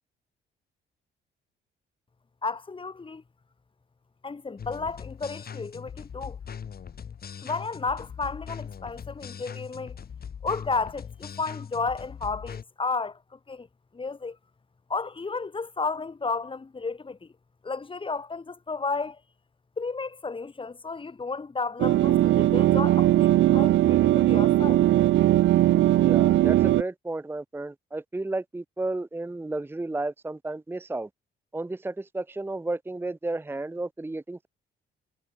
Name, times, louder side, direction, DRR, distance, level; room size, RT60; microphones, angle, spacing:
voice 1, 2.4-3.2 4.2-6.4 7.4-10.0 10.4-13.7 13.9-14.4 14.9-17.3 17.6-19.2 19.8-24.8, left 4 dB, 25° left, 2.5 m, -32 dB
sound 1, 4.6-12.6, left 7 dB, 50° left, 6.5 m, -40 dB
sound 2, 21.8-26.8, right 14 dB, 70° right, 0.5 m, -20 dB
voice 2, 25.9-31.1 31.5-34.5, right 2 dB, 10° right, 0.7 m, -32 dB
cardioid pair, 90°, 20 cm